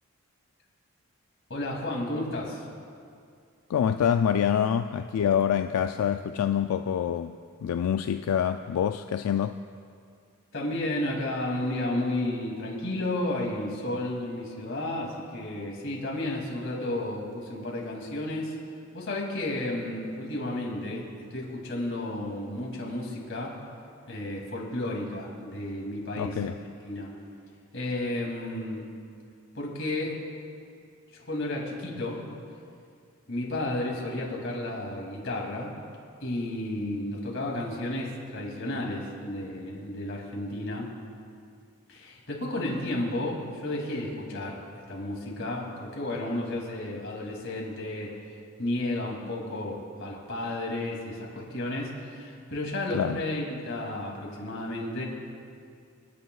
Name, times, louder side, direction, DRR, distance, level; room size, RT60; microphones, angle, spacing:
voice 1, 1.5-2.7 10.5-18.6 18.9-23.5 24.1-26.4 26.6-27.1 27.7-28.9 29.5-30.2 31.1-32.2 33.3-35.7 36.2-40.9 41.9-48.1 48.6-55.0, left 1 dB, 55° left, -2 dB, 2.6 m, -32 dB
voice 2, 3.7-9.6 26.2-26.6 52.9-53.2, left 8 dB, 85° left, 8 dB, 0.3 m, -26 dB
28.0 x 9.4 x 2.4 m, 2.3 s
head